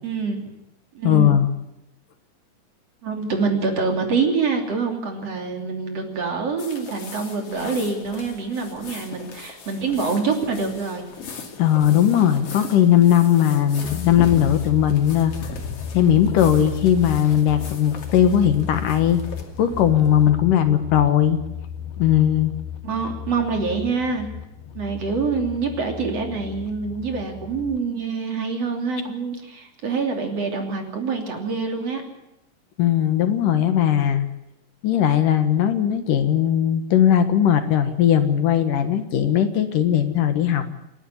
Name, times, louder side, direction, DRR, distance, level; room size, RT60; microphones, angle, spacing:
voice 1, 0.0-0.5 0.9-1.4 3.0-11.1 22.8-24.3 24.8-32.0, right 4 dB, 45° right, 3 dB, 3.9 m, -25 dB
voice 2, 1.0-1.5 11.6-15.3 15.9-19.2 19.6-21.4 22.0-22.5 32.8-34.3 34.8-40.6, left 10 dB, 70° left, 9 dB, 2.9 m, -18 dB
sound 1, 6.6-20.2, left 4 dB, 45° left, 3.2 m, -38 dB
sound 2, 13.8-27.8, left 8 dB, 85° left, 3.1 m, -34 dB
28.5 x 11.5 x 9.6 m, 0.89 s
omnidirectional pair, 4.1 m